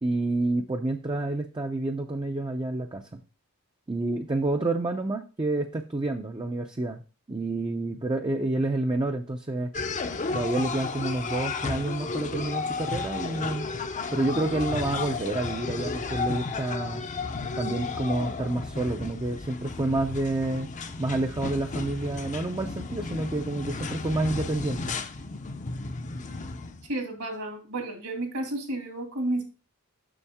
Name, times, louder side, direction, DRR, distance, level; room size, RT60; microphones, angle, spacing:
voice 1, 0.0-3.2 3.9-7.0 7.3-9.7 10.3-13.7 14.1-17.0 17.6-20.7 21.0-25.0, right 2 dB, 20° right, 4 dB, 0.5 m, -29 dB
sound 1, 9.7-26.9, left 4 dB, 35° left, 0.6 m, -33 dB
voice 2, 26.9-29.4, right 1 dB, 70° right, 3 dB, 2.3 m, -31 dB
7.1 x 6.3 x 3.5 m, 0.33 s
head